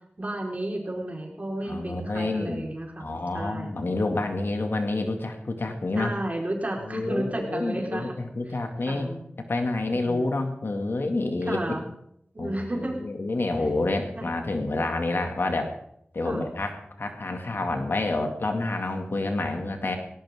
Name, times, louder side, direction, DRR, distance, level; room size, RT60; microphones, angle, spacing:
voice 1, 0.2-3.7 5.9-8.1 8.5-8.6 8.8-9.3 9.9-10.3 11.5-11.9 12.3-13.0 13.6-13.7 14.1-14.3 16.2-16.5, right 1 dB, 40° right, 0 dB, 4.4 m, -32 dB
voice 2, 1.6-2.7 3.0-6.1 6.9-9.1 9.5-11.6 12.4-15.7 16.1-20.0, left 2 dB, 75° left, 4 dB, 2.3 m, -28 dB
18.0 x 18.0 x 3.7 m, 0.71 s
wide cardioid pair, 70°, 4 cm